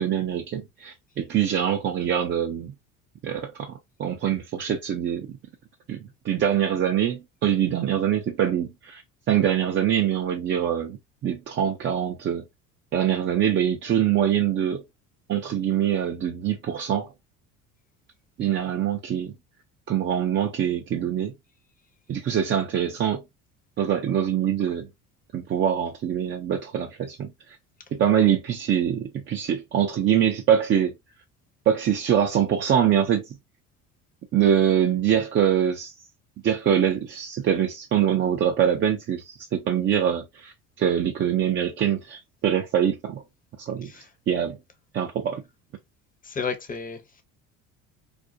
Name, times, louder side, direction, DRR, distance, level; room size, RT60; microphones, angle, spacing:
voice 1, 0.0-2.7 3.2-5.3 5.9-6.0 6.2-9.0 9.3-11.0 11.2-12.4 12.9-14.8 15.3-17.1 18.4-19.3 19.9-21.3 22.1-23.2 23.8-24.9 25.3-27.6 27.9-30.9 31.7-33.4 34.3-35.9 36.4-43.2 43.6-43.9 44.3-44.6 44.9-45.4, right 9 dB, 30° right, 0.4 m, -24 dB
voice 2, 46.2-47.2, left 5 dB, 20° left, 0.6 m, -33 dB
2.4 x 2.0 x 2.5 m
hypercardioid pair, 70°, 41 cm